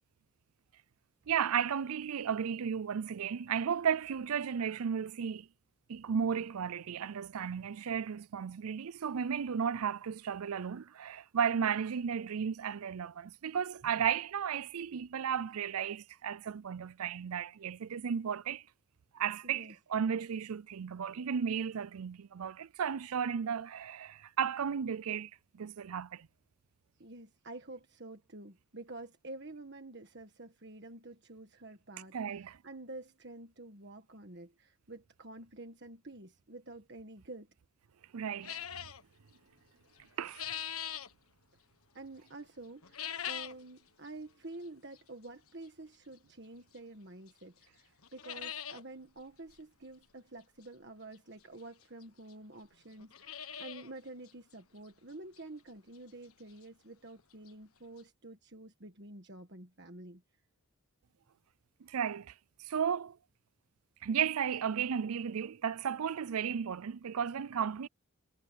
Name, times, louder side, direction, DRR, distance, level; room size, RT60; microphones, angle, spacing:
voice 1, 1.3-5.5 5.9-18.6 19.1-26.3 32.1-32.6 38.1-38.6 40.2-40.4 61.8-62.3 62.6-63.2 64.0-67.9, right 7 dB, 85° right, 0.5 m, -34 dB
voice 2, 19.4-19.7 27.0-37.5 41.9-60.2, right 2 dB, 50° right, 1.6 m, -49 dB
sound 1, 38.4-39.0 40.0-41.1 42.8-43.6 44.0-44.1 45.0-45.1 46.7-46.8 47.3-47.4 47.6-47.7 48.0-48.8 49.2-49.3 49.5-49.6 51.1-51.2 52.0-52.1 52.3-52.4 52.9-53.9 54.3-54.4 54.9-55.0 55.4-55.5 57.2-57.3 57.5-57.6 58.0-58.1, left 9 dB, 80° left, 1.5 m, -41 dB
head